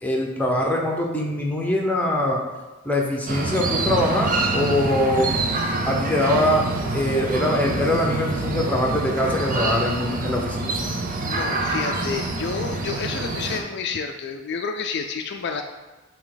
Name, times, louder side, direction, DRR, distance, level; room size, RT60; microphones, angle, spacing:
voice 1, 0.0-2.4 2.8-5.3 5.8-6.7 6.9-10.8, left 1 dB, 10° left, 0 dB, 0.9 m, -23 dB
sound 1, 3.3-13.6, right 2 dB, 45° right, 0.7 m, -26 dB
voice 2, 11.2-15.6, left 5 dB, 55° left, 5 dB, 0.4 m, -29 dB
8.1 x 3.0 x 3.9 m, 1.2 s
head